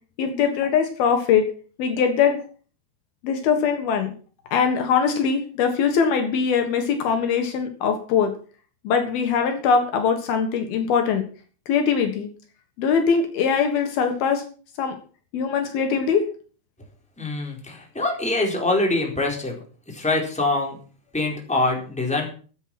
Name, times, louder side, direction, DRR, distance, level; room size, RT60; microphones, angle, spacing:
voice 1, 0.2-1.5 1.8-2.4 3.2-4.1 4.5-8.3 8.9-11.3 11.7-12.3 12.8-14.4 14.8-15.0 15.3-16.2, left 6 dB, 70° left, 5 dB, 3.4 m, -21 dB
voice 2, 17.2-19.6 19.9-20.8 21.1-22.3, left 2 dB, ahead, 0 dB, 3.8 m, -24 dB
15.0 x 8.6 x 6.0 m, 0.40 s
omnidirectional pair, 4.6 m